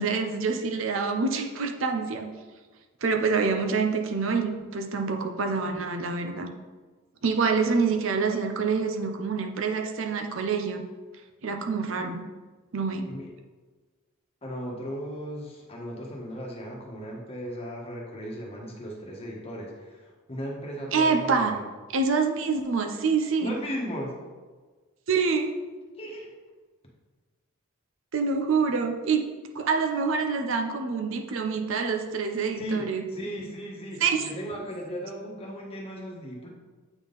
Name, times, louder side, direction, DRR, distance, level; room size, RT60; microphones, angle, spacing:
voice 1, 0.0-2.3 3.0-6.5 7.2-10.9 11.4-12.2 12.7-13.1 20.9-21.6 21.9-23.6 25.1-25.5 28.1-29.3 29.5-33.0 34.0-34.3, right 5 dB, 65° right, 4 dB, 0.6 m, -26 dB
voice 2, 14.4-21.6 23.4-24.2 26.0-26.3 32.6-32.8 33.1-36.5, equal, 30° left, -2 dB, 1.2 m, -36 dB
8.1 x 3.7 x 3.9 m, 1.4 s
head